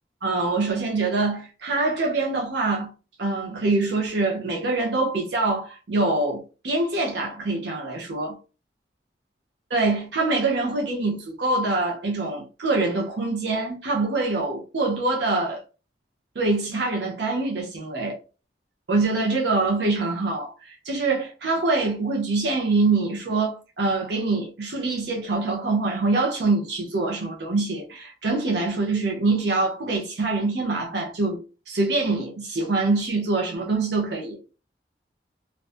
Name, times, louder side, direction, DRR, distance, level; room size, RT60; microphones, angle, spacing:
voice 1, 0.2-2.9 3.2-8.4 9.7-15.6 16.4-18.2 18.9-31.4 31.7-34.4, right 3 dB, 70° right, 0.6 m, -24 dB
2.4 x 2.2 x 2.4 m
head